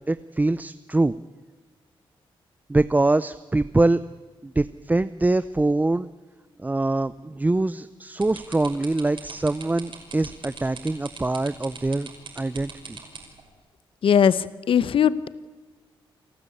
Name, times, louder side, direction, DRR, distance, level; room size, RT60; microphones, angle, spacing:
voice 1, 0.1-1.2 2.7-4.0 4.4-6.1 6.6-12.1 12.4-13.0, right 2 dB, 15° right, 14 dB, 0.6 m, -23 dB
sound 1, 8.2-13.4, right 5 dB, 65° right, 5.9 m, -40 dB
voice 2, 14.0-15.3, left 8 dB, 70° left, 17 dB, 0.8 m, -20 dB
28.0 x 13.0 x 8.5 m, 1.3 s
cardioid pair, 75°, 9 cm